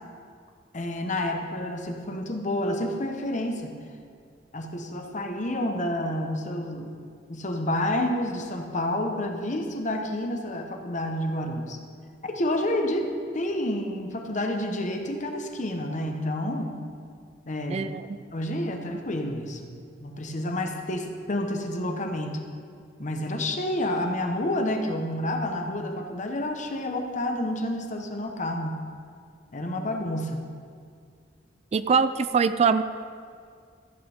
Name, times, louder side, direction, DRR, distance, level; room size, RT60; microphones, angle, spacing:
voice 1, 0.7-3.7 4.5-7.0 7.3-11.8 12.2-13.1 13.3-16.7 17.5-17.9 18.3-22.4 23.0-28.7 29.5-30.4, left 1 dB, 45° left, 4 dB, 1.1 m, -29 dB
voice 2, 17.7-18.1 31.7-32.8, right 5 dB, 35° right, 12 dB, 0.3 m, -22 dB
14.5 x 8.8 x 3.5 m, 2.2 s
head